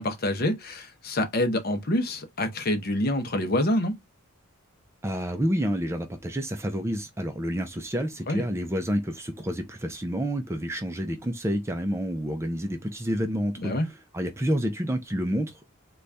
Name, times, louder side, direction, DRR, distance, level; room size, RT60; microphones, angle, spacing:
voice 1, 0.0-4.0 8.3-8.4 13.6-13.9, left 1 dB, 45° left, 0.7 m, -26 dB
voice 2, 5.0-15.7, equal, 10° right, 0.4 m, -29 dB
4.0 x 2.3 x 3.2 m
head